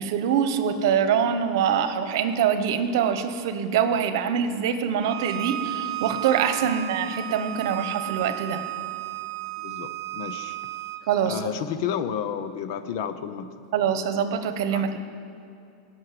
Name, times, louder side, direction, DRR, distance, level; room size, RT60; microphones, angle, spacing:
voice 1, 0.0-8.6 11.1-11.4 13.7-15.0, right 8 dB, 65° right, 9 dB, 1.0 m, -24 dB
Bowed string instrument, 5.0-11.0, right 15 dB, 85° right, 0.7 m, -33 dB
voice 2, 9.6-10.6 11.3-13.5 14.7-14.8, left 8 dB, 55° left, 11 dB, 0.8 m, -31 dB
17.0 x 6.5 x 7.7 m, 2.6 s
supercardioid pair, 145°, 2 cm